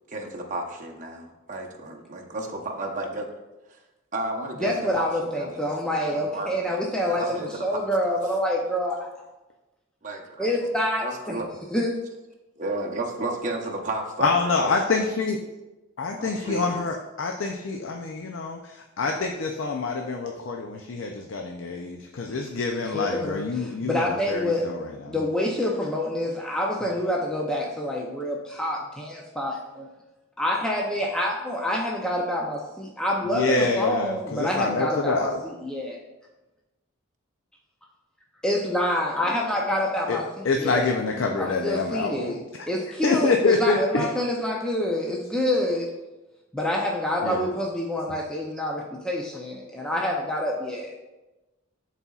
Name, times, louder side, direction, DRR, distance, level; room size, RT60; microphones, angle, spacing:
voice 1, 0.1-3.3 3.7-3.8 4.1-8.2 10.0-10.7 11.0-11.5 12.6-14.7 16.2-16.8 32.4-32.5, right 2 dB, 35° right, 0 dB, 0.8 m, -33 dB
voice 2, 4.6-9.0 10.4-11.4 11.7-11.9 22.9-24.6 25.1-29.9 30.4-35.3 35.6-36.0 38.4-40.9 41.4-42.4 42.7-45.9 46.5-50.9, left 1 dB, 5° left, -2 dB, 0.5 m, -27 dB
voice 3, 14.2-15.4 16.0-25.2 33.2-35.4 40.1-40.2 40.4-42.4 43.0-44.1 47.2-47.5, left 3 dB, 65° left, 2 dB, 0.5 m, -26 dB
11.0 x 4.1 x 2.4 m, 1.1 s
head